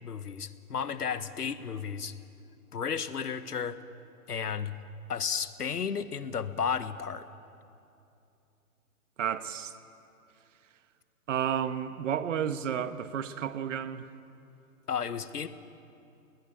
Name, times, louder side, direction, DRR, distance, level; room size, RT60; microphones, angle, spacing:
voice 1, 0.0-2.1 2.7-3.8 4.3-4.7 5.1-7.3 14.9-15.5, left 7 dB, 85° left, 12 dB, 1.5 m, -33 dB
voice 2, 9.2-9.7 11.3-14.0, right 9 dB, 55° right, 11 dB, 1.4 m, -31 dB
20.5 x 19.5 x 10.0 m, 2.7 s
hypercardioid pair, 140°, 45 cm